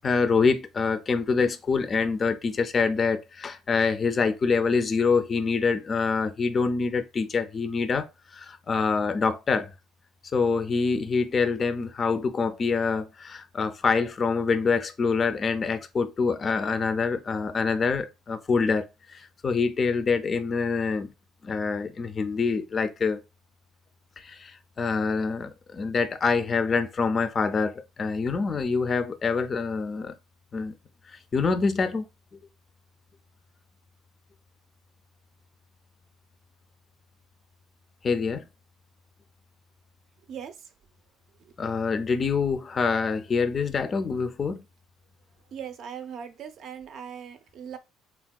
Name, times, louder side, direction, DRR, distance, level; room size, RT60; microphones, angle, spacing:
voice 1, 0.0-8.1 8.3-9.7 10.3-21.1 21.4-23.2 24.2-30.1 30.5-30.7 31.3-32.1 38.0-38.4 41.6-44.6, left 4 dB, 35° left, 0.3 m, -25 dB
voice 2, 40.3-40.7 41.4-41.5 45.5-47.8, right 8 dB, 60° right, 0.5 m, -40 dB
3.4 x 2.2 x 2.2 m
supercardioid pair, 95°, 0 cm